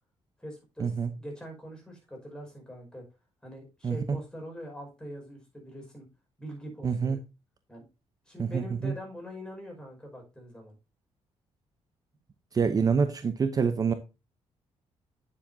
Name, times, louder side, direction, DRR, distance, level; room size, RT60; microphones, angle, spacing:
voice 1, 0.4-3.1 3.4-6.1 6.4-7.2 7.7-7.8 8.3-10.8, equal, 5° left, 5.3 m, -43 dB
voice 2, 6.8-7.2 8.4-8.9 12.5-13.9, right 6 dB, 35° right, 0.8 m, -26 dB
9.6 x 7.5 x 2.7 m
cardioid pair, 115°, 11 cm